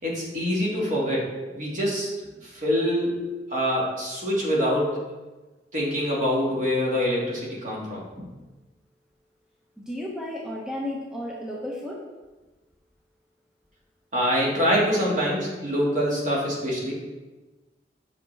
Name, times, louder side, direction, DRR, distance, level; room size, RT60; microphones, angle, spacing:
voice 1, 0.0-3.2 3.5-5.0 5.7-8.1 14.1-16.9, equal, 45° right, -4 dB, 1.9 m, -25 dB
voice 2, 9.8-12.0, left 1 dB, 5° right, -3 dB, 0.8 m, -33 dB
7.6 x 5.8 x 3.3 m, 1.2 s
head